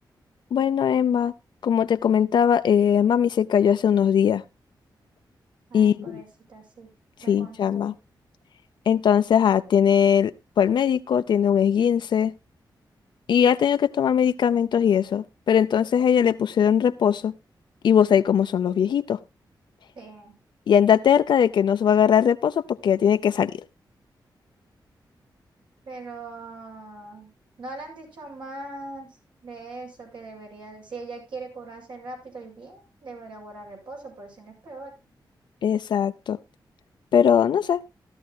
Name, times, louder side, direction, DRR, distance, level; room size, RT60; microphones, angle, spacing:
voice 1, 0.5-1.3 1.6-4.4 5.7-6.2 7.3-7.9 8.9-12.3 13.3-17.3 17.8-19.2 20.7-23.5 35.6-36.4 37.1-37.8, left 8 dB, 75° left, 0.5 m, -20 dB
voice 2, 5.7-6.9 7.2-8.0 20.0-20.3 25.9-27.3 27.6-29.2 29.4-34.9, right 3 dB, 80° right, 7.6 m, -41 dB
16.5 x 12.5 x 2.3 m
wide cardioid pair, 130°, 8 cm